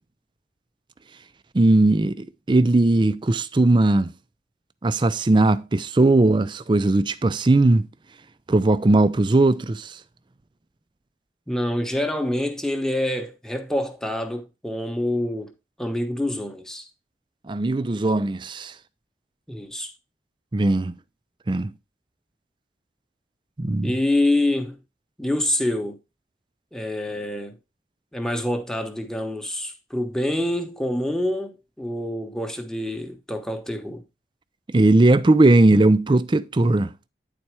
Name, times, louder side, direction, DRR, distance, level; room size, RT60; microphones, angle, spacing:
voice 1, 1.5-4.1 4.8-7.9 8.5-10.0 17.5-18.7 20.5-20.9 21.5-21.7 23.6-23.9 34.7-36.9, right 2 dB, 25° right, 0.4 m, -18 dB
voice 2, 11.5-15.5 15.8-16.9 19.5-19.9 23.8-24.8 25.2-26.0 26.7-27.6 28.1-34.0, left 1 dB, 5° left, 0.9 m, -26 dB
9.8 x 4.3 x 4.6 m
head